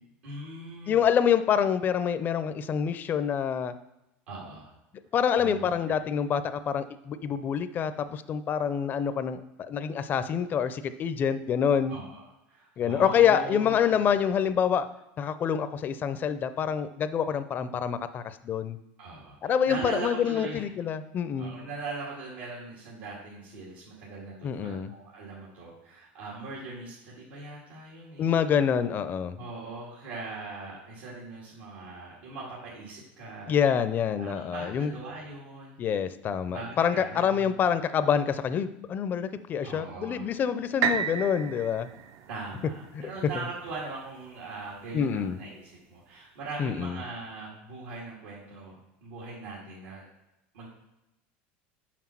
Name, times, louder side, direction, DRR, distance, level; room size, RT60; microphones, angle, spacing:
voice 1, 0.2-1.1 4.3-4.7 5.4-5.9 11.9-14.0 19.0-20.7 21.4-28.3 29.4-33.6 34.2-35.8 36.5-37.6 39.6-40.3 42.3-50.0 50.5-50.7, right 3 dB, 90° right, -6 dB, 2.0 m, -40 dB
voice 2, 0.9-3.7 5.1-9.4 9.7-12.0 12.8-14.9 15.2-18.8 19.4-21.5 24.4-24.9 28.2-29.4 33.5-34.9 35.8-41.9 42.9-43.1 44.9-45.4 46.6-47.0, left 8 dB, 35° left, 12 dB, 0.5 m, -26 dB
sound 1, 40.8-44.7 45.3-45.4, right 7 dB, 55° right, 0.5 m, -33 dB
5.9 x 4.5 x 5.8 m, 0.90 s
supercardioid pair, 120°, 6 cm